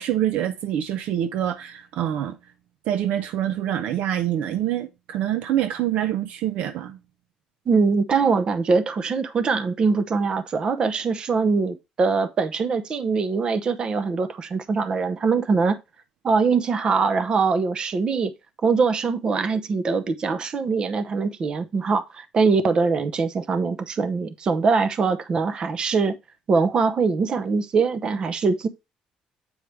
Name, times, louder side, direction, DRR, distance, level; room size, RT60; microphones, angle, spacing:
voice 1, 0.0-2.4 2.9-7.0, right 11 dB, 75° right, 0.6 m, -25 dB
voice 2, 7.7-15.8 16.2-18.3 18.6-26.2 26.5-28.7, right 4 dB, 45° right, 0.8 m, -22 dB
8.0 x 4.7 x 3.2 m
cardioid pair, 90°, 2 cm